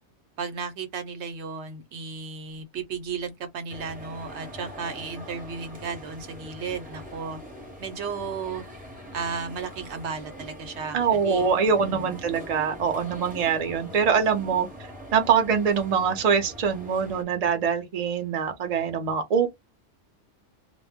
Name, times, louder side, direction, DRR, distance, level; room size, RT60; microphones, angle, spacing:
voice 1, 0.4-7.4 7.8-8.6 9.1-11.5 11.8-12.1, right 5 dB, 70° right, 0.9 m, -34 dB
sound 1, 3.7-17.2, equal, 10° right, 0.7 m, -43 dB
voice 2, 10.9-14.7 15.1-19.5, right 6 dB, 40° right, 0.6 m, -24 dB
2.2 x 2.0 x 3.4 m
omnidirectional pair, 1.3 m